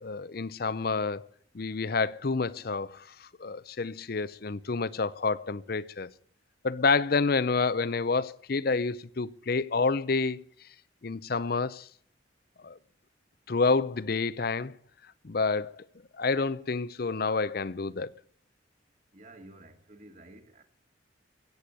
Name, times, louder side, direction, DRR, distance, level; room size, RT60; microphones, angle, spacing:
voice 1, 0.0-1.3 1.5-6.1 6.6-10.4 11.0-11.9 12.6-12.8 13.5-14.7 15.2-15.8 16.2-18.1, left 4 dB, 50° left, 0.6 m, -28 dB
voice 2, 19.1-20.6, right 1 dB, 40° right, 1.8 m, -51 dB
16.0 x 8.5 x 8.4 m
head